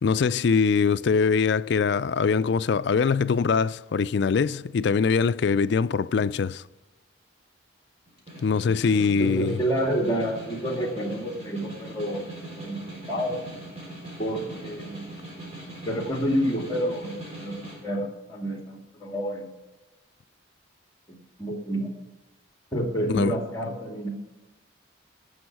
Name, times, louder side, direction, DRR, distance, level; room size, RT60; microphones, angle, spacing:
voice 1, 0.0-6.6 8.4-9.6 23.1-23.4, left 5 dB, 55° left, 0.3 m, -23 dB
Snare drum, 8.1-17.8, right 1 dB, 30° right, 3.9 m, -41 dB
voice 2, 9.2-13.4 14.2-15.0 15.9-19.5 21.1-21.9 22.7-24.1, equal, 20° left, 2.2 m, -29 dB
17.5 x 6.3 x 4.6 m
head